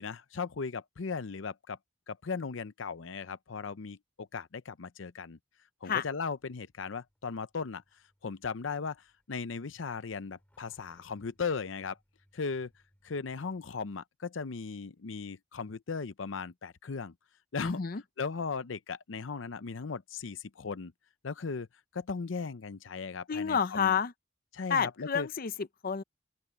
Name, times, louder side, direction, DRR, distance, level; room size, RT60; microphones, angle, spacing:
voice 1, 0.0-1.8 2.1-5.4 5.8-7.8 8.2-12.0 12.3-12.7 13.0-17.1 17.5-17.8 18.2-20.9 21.2-21.7 21.9-24.0 24.5-25.3, left 5 dB, 90° left, 0.6 m, -37 dB
Truck, 6.4-14.0, equal, 10° left, 7.5 m, -71 dB
voice 2, 17.6-18.0 23.3-24.1 24.7-26.0, left 6 dB, 50° left, 0.6 m, -30 dB
open air
head